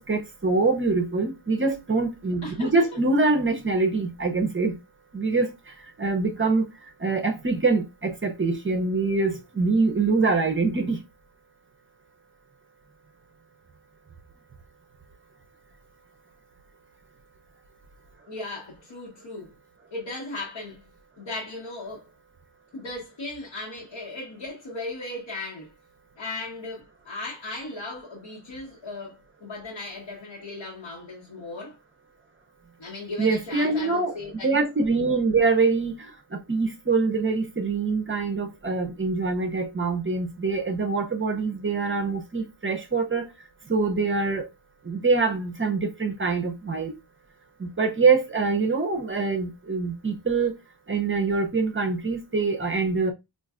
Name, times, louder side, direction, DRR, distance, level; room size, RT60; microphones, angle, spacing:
voice 1, 0.0-4.8 5.1-5.5 6.0-6.7 7.0-11.0 33.2-34.2 34.4-43.3 43.7-44.5 44.9-46.9 47.6-50.5 50.9-53.1, right 4 dB, 30° right, 0.6 m, -24 dB
voice 2, 18.3-19.5 19.9-20.8 21.2-22.1 22.7-25.7 26.2-31.8 32.8-34.5, left 2 dB, 65° left, 1.3 m, -37 dB
4.4 x 2.5 x 2.4 m
wide cardioid pair, 120°, 45 cm